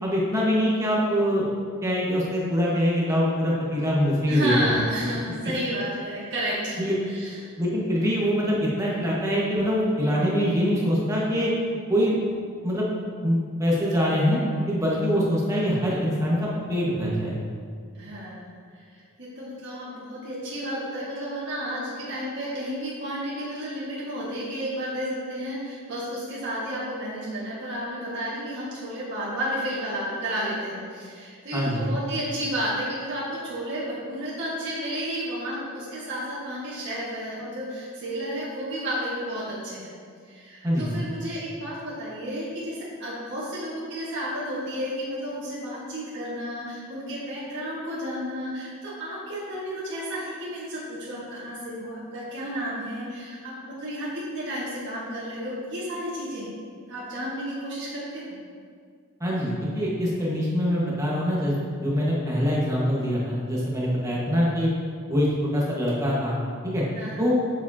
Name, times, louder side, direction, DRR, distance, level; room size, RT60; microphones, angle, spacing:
voice 1, 0.0-1.4 1.8-4.7 6.8-6.9 7.6-11.5 11.9-12.1 12.6-12.9 13.2-14.4 14.7-17.3 31.5-31.9 40.6-41.0 59.2-61.5 61.8-64.7 65.1-66.4 66.6-66.8 67.2-67.4, equal, 15° right, -6 dB, 1.5 m, -24 dB
voice 2, 4.3-7.4 17.9-18.5 18.9-39.9 40.3-56.5 56.9-58.4 66.9-67.3, equal, 55° right, -9 dB, 1.7 m, -32 dB
7.3 x 7.3 x 2.8 m, 2.1 s
head